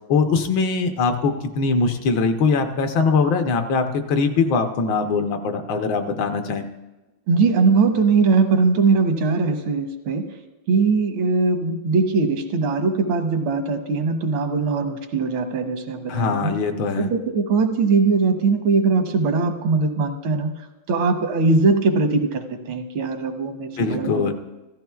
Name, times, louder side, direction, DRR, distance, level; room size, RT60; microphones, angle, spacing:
voice 1, 0.1-6.7 16.1-17.1 23.8-24.3, left 4 dB, 70° left, 6 dB, 1.5 m, -21 dB
voice 2, 7.3-10.2 10.7-16.6 17.0-20.5 20.9-24.3, right 4 dB, 85° right, 6 dB, 1.8 m, -20 dB
15.5 x 13.5 x 2.3 m, 1.1 s
omnidirectional pair, 2.2 m